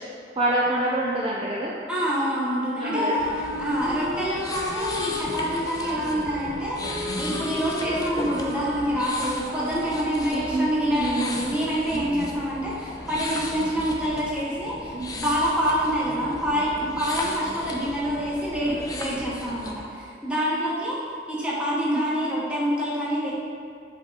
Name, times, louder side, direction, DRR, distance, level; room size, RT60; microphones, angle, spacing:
voice 1, 0.4-1.7 2.8-3.1 10.3-10.8 11.0-11.4 11.9-12.1 14.9-15.1 21.7-22.0, right 1 dB, 30° right, -5 dB, 0.5 m, -26 dB
voice 2, 1.9-3.3 3.6-21.0 21.3-23.3, equal, 5° right, -7 dB, 1.3 m, -26 dB
Wind instrument woodwind instrument, 2.3-10.6, left 1 dB, 70° right, 0.7 m, -34 dB
sound 1, 3.2-19.8, left 2 dB, 20° left, 0.5 m, -36 dB
8.0 x 3.7 x 4.0 m, 2.4 s
head